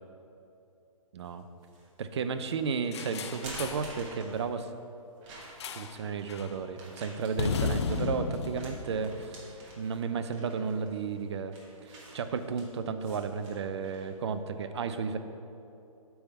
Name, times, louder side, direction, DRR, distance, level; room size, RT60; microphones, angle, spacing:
voice 1, 1.1-1.4 2.0-4.7 5.7-11.5 11.9-15.2, right 5 dB, 50° right, 10 dB, 0.5 m, -33 dB
sound 1, 1.2-1.9 2.4-2.5 3.1-4.7 5.2-5.8 6.7-14.2, right 2 dB, 25° right, 1.4 m, -49 dB
sound 2, 2.9-3.9 5.6-6.0 6.3-6.6 7.4-9.7, left 4 dB, 50° left, 0.5 m, -34 dB
8.7 x 3.5 x 5.4 m, 2.8 s
figure-of-eight pair, 135°, 18 cm